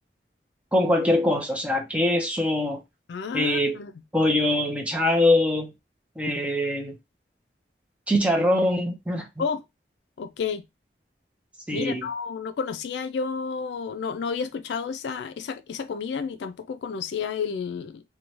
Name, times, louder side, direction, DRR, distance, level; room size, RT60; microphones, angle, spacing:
voice 1, 0.7-2.8 3.3-3.8 4.1-5.7 6.2-7.0 8.1-9.3 11.7-12.1, left 1 dB, 5° right, 0.5 m, -23 dB
voice 2, 3.1-3.9 9.4-9.6 10.2-10.6 11.7-18.0, left 5 dB, 75° left, 0.3 m, -31 dB
2.7 x 2.1 x 3.0 m
head